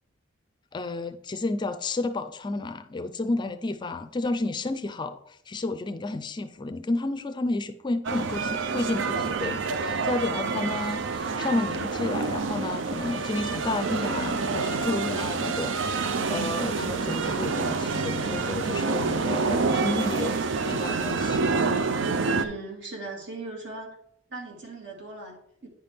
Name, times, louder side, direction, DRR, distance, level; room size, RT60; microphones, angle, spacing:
voice 1, 0.7-20.4 20.6-21.4, left 2 dB, 25° left, 10 dB, 0.4 m, -31 dB
sound 1, 8.0-22.4, right 4 dB, 80° right, 0.5 m, -27 dB
voice 2, 22.3-24.0 24.3-25.7, right 3 dB, 65° right, 0 dB, 2.2 m, -38 dB
9.3 x 5.7 x 3.5 m, 0.71 s
head